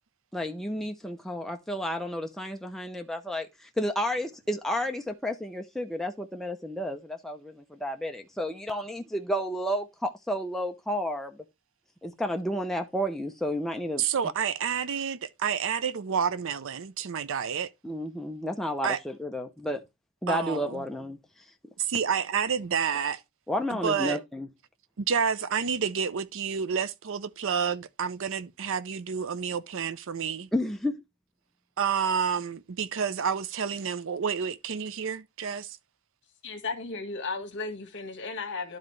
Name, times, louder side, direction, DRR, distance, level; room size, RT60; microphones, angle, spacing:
voice 1, 0.3-11.4 12.0-14.0 17.8-19.8 20.2-21.2 23.5-24.5 30.5-30.9, equal, ahead, 0.5 m, -31 dB
voice 2, 14.0-17.7 18.8-19.0 20.3-20.8 21.8-23.2 23.7-24.2 25.0-30.5 31.8-35.8, right 7 dB, 65° right, 0.5 m, -29 dB
voice 3, 36.4-38.8, left 4 dB, 55° left, 1.6 m, -35 dB
12.0 x 3.9 x 3.1 m
head